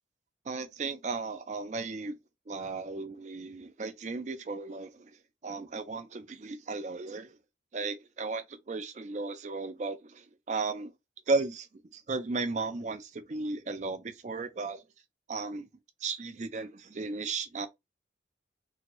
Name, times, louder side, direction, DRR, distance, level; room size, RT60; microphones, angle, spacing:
voice 1, 0.5-2.2 2.5-5.1 5.4-7.3 7.7-10.2 10.5-10.9 11.3-11.7 11.9-14.8 15.3-15.7 16.0-17.7, right 3 dB, 40° right, 0.4 m, -35 dB
2.8 x 2.6 x 3.0 m
head